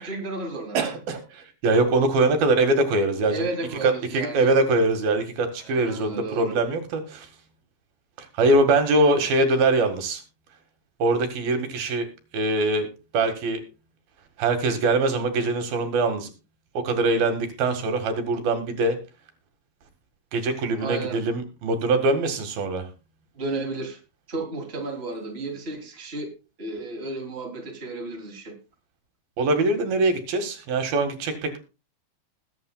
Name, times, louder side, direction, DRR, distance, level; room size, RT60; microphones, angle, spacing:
voice 1, 0.0-0.8 3.3-4.5 5.6-6.6 20.7-21.2 23.3-24.0 24.3-26.3 26.6-28.5, right 2 dB, 20° right, 3 dB, 2.9 m, -33 dB
voice 2, 0.8-3.5 3.8-7.3 8.2-10.2 11.0-12.1 12.3-13.6 14.4-16.3 16.8-19.0 20.3-22.9 29.4-31.6, right 2 dB, 85° right, 7 dB, 3.7 m, -23 dB
20.5 x 9.3 x 2.3 m, 0.30 s
omnidirectional pair, 4.1 m